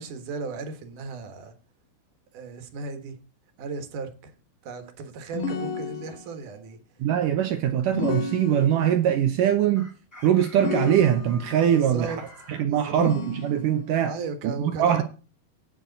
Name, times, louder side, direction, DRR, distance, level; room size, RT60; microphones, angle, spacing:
voice 1, 0.0-1.5 2.3-3.2 3.6-4.3 4.6-6.8 11.7-12.2 12.7-13.0 14.0-15.0, right 4 dB, 60° right, 2.6 m, -35 dB
sound 1, 5.3-6.5 7.9-9.1 10.5-11.6 13.0-14.0, left 4 dB, 55° left, 3.2 m, -32 dB
voice 2, 7.0-9.9 10.2-12.2 12.5-14.2 14.4-15.0, right 10 dB, 75° right, 1.9 m, -22 dB
Chicken rooster, 9.7-12.6, equal, 10° left, 1.2 m, -48 dB
17.0 x 6.5 x 4.0 m
omnidirectional pair, 4.8 m